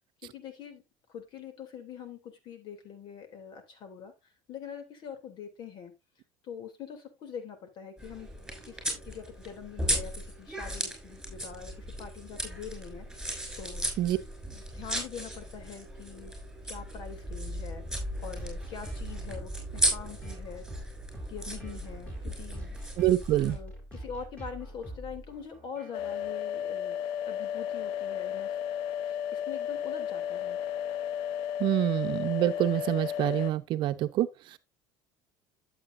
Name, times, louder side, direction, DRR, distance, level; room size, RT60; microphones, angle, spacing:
voice 1, 0.2-0.8 1.1-5.9 6.4-8.3 8.6-13.9 14.5-16.4 16.6-20.7 21.3-22.8 23.5-27.0 27.2-28.6 29.0-30.6, left 7 dB, 55° left, 3.1 m, -44 dB
sound 1, 8.0-23.6, right 1 dB, 5° right, 5.9 m, -36 dB
sound 2, 17.9-26.3, equal, 15° left, 4.9 m, -44 dB
voice 2, 23.0-23.6 31.6-34.6, right 14 dB, 60° right, 0.8 m, -26 dB
sound 3, 25.9-33.5, left 9 dB, 75° left, 0.6 m, -33 dB
11.5 x 7.9 x 2.6 m
supercardioid pair, 105°, 9 cm